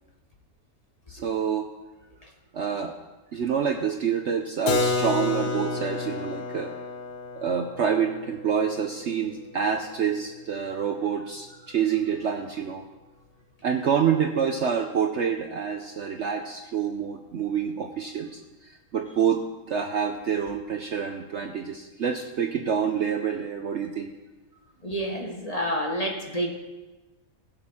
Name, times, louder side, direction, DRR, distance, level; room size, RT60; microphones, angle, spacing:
voice 1, 1.1-1.7 2.5-2.9 3.3-6.7 7.4-12.8 13.6-18.4 18.9-19.4 19.7-24.1, right 7 dB, 60° right, 4 dB, 0.9 m, -27 dB
Keyboard (musical), 4.7-10.3, left 3 dB, 85° left, 1.6 m, -31 dB
voice 2, 24.8-26.5, equal, 25° left, 1 dB, 1.3 m, -28 dB
20.5 x 6.9 x 3.6 m, 1.1 s
omnidirectional pair, 1.7 m